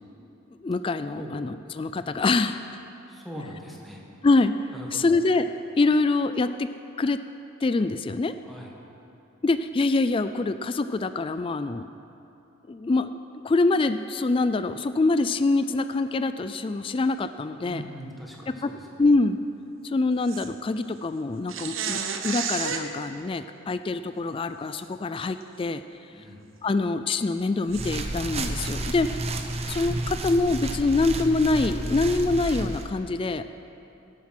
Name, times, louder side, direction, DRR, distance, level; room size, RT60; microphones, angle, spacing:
voice 1, 0.6-2.8 4.2-4.5 4.9-5.4 5.8-6.7 7.0-7.2 7.6-8.3 9.4-11.9 12.7-13.2 13.4-17.8 19.0-19.4 19.8-25.8 26.6-29.2 29.7-33.4, left 3 dB, 25° left, 11 dB, 0.3 m, -25 dB
voice 2, 3.1-4.0 4.7-5.1 8.4-8.7 17.6-19.2 26.1-26.5, equal, ahead, -2 dB, 1.7 m, -41 dB
sound 1, 20.3-20.5 21.5-22.9 24.7-24.8 25.4-25.5 27.7-27.9, right 7 dB, 70° right, 1.0 m, -31 dB
sound 2, 27.7-32.9, right 2 dB, 30° right, 0.8 m, -31 dB
17.0 x 8.7 x 6.0 m, 2.9 s
head